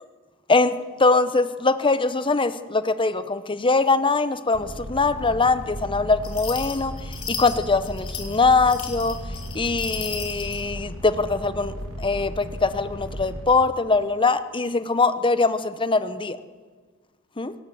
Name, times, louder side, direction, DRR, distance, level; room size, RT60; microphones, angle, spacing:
voice 1, 1.0-9.2 9.5-16.4 17.4-17.5, left 3 dB, 25° left, 13 dB, 0.9 m, -22 dB
sound 1, 4.5-13.4, equal, 70° right, 5.4 m, -35 dB
sound 2, 6.2-10.6, left 6 dB, 65° left, 4.2 m, -35 dB
24.5 x 18.0 x 7.8 m, 1.5 s
head